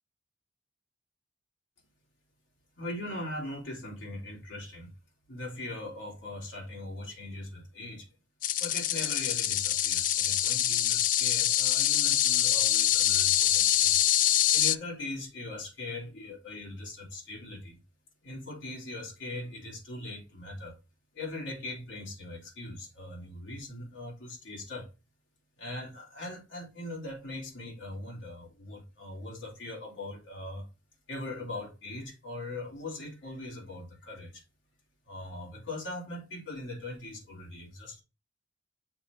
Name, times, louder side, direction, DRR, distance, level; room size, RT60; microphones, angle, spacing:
voice 1, 2.8-4.9 5.3-8.1 8.6-13.9 14.3-17.8 18.2-20.8 21.1-24.9 25.6-30.7 31.1-34.4 35.0-38.0, left 2 dB, 75° left, 3.1 m, -40 dB
sound 1, 8.4-14.8, left 12 dB, 45° left, 0.4 m, -25 dB
6.8 x 3.5 x 5.8 m
head